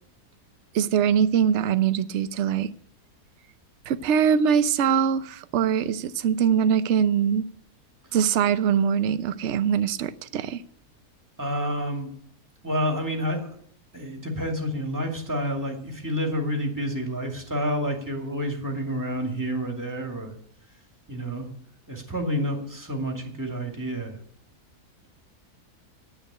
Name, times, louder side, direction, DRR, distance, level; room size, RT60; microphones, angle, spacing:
voice 1, 0.7-2.7 3.9-7.4 8.1-10.6, right 8 dB, 60° right, 0.9 m, -22 dB
voice 2, 11.4-12.1 12.6-13.5 13.9-20.3 21.1-21.5 21.9-24.2, equal, 10° right, 2.3 m, -29 dB
9.7 x 8.7 x 9.8 m
omnidirectional pair, 1.6 m